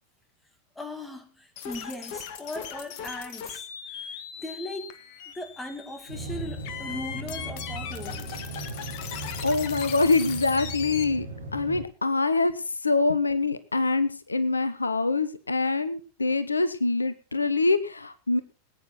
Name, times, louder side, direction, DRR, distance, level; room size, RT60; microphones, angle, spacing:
voice 1, 0.8-3.7 3.9-5.0 5.3-8.4, left 1 dB, 10° left, 8 dB, 2.2 m, -38 dB
sound 1, 1.6-11.0, left 8 dB, 45° left, 1.5 m, -39 dB
sound 2, 6.1-11.8, right 2 dB, 80° right, 3.6 m, -38 dB
voice 2, 9.4-11.3 11.5-18.4, left 3 dB, 80° left, 14 dB, 0.8 m, -25 dB
20.0 x 9.4 x 4.2 m, 0.35 s
figure-of-eight pair, 90°, 0 cm